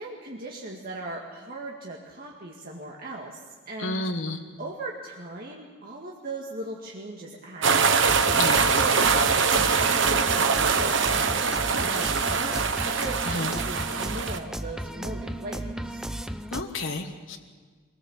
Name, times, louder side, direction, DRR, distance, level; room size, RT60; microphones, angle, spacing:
voice 1, 0.0-4.1 4.6-7.9 8.2-16.1, right 2 dB, 45° right, -2 dB, 2.0 m, -39 dB
voice 2, 3.8-4.4 8.3-8.7 13.3-13.5 16.5-17.4, left 2 dB, 70° left, 3 dB, 1.6 m, -30 dB
sound 1, 7.6-14.4, right 5 dB, 65° right, 1.1 m, -23 dB
sound 2, 8.1-16.6, right 1 dB, 5° right, 0.5 m, -35 dB
24.0 x 17.5 x 7.3 m, 1.5 s
head